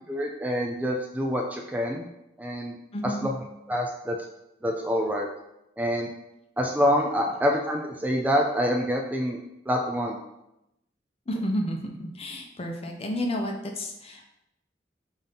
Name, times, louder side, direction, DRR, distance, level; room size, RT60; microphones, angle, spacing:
voice 1, 0.1-2.1 2.4-2.8 3.0-3.3 3.7-4.2 4.6-5.3 5.8-6.1 6.6-9.4 9.7-10.2, equal, 10° right, 1 dB, 0.3 m, -26 dB
voice 2, 2.9-3.3 11.3-14.3, equal, 35° left, 2 dB, 0.6 m, -31 dB
5.5 x 2.7 x 3.5 m, 0.87 s
head